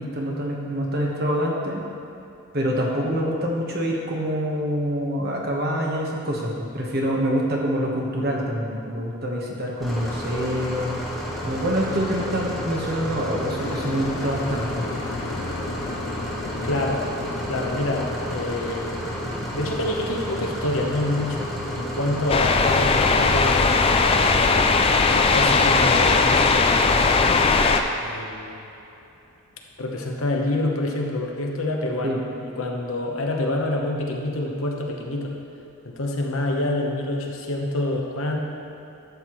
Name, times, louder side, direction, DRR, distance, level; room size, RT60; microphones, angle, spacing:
voice 1, 0.0-1.8 2.5-11.0 11.4-14.8 32.0-32.3, equal, 45° right, -2 dB, 1.3 m, -26 dB
sound 1, 9.8-27.7, equal, ahead, 1.2 m, -31 dB
sound 2, 13.6-27.6 28.1-28.8, left 3 dB, 90° left, 0.6 m, -38 dB
voice 2, 16.6-17.0 17.5-18.8 19.5-21.5 21.7-23.8 25.1-26.8 28.0-28.7 29.8-35.3 35.8-38.4, left 1 dB, 75° left, 0 dB, 1.1 m, -27 dB
sound 3, 22.3-27.8, left 4 dB, 25° left, 0.3 m, -18 dB
12.0 x 8.0 x 3.1 m, 2.8 s
head